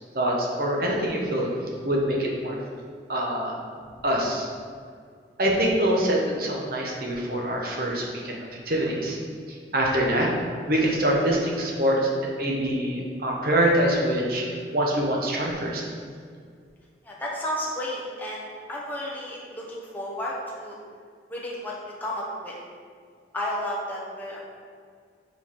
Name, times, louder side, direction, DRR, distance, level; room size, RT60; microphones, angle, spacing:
voice 1, 0.1-1.5 1.8-2.6 3.1-3.6 4.0-4.5 5.4-8.4 8.7-9.2 9.5-10.3 10.7-15.8, right 1 dB, 55° right, -2 dB, 1.1 m, -25 dB
voice 2, 17.0-20.8 21.3-21.7 22.0-22.6 23.3-24.5, left 1 dB, 10° left, -5 dB, 1.0 m, -32 dB
5.3 x 4.8 x 4.6 m, 2.1 s
head